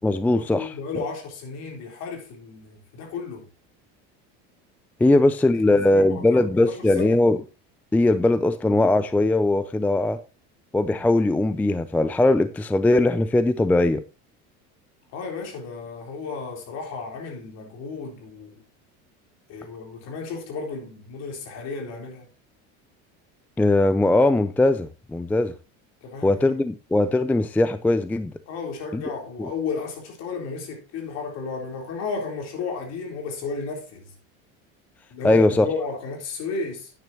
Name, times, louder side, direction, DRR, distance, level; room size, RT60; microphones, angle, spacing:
voice 1, 0.0-0.8 5.0-7.4 7.9-10.2 10.7-14.0 23.6-25.5 26.2-28.3 28.9-29.0 29.4-29.5 35.2-35.7, left 2 dB, 5° left, 0.4 m, -20 dB
voice 2, 0.6-3.4 5.0-5.2 5.7-7.2 15.1-18.6 19.5-22.3 26.0-26.6 28.5-34.1 35.1-36.9, left 4 dB, 55° left, 3.7 m, -33 dB
10.0 x 9.2 x 2.9 m
cardioid pair, 130°, 31 cm